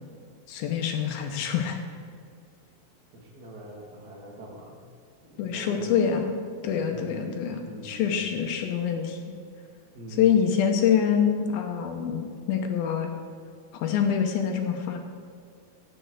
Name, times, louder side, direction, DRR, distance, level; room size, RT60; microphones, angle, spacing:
voice 1, 0.5-1.8 5.4-9.2 10.2-13.1 13.7-15.0, left 8 dB, 80° left, 4 dB, 2.6 m, -25 dB
voice 2, 3.1-4.8 5.2-5.9 6.9-7.4 7.6-8.4 9.9-10.3, right 1 dB, 40° right, -2 dB, 1.6 m, -43 dB
10.0 x 5.3 x 7.8 m, 2.2 s
omnidirectional pair, 4.2 m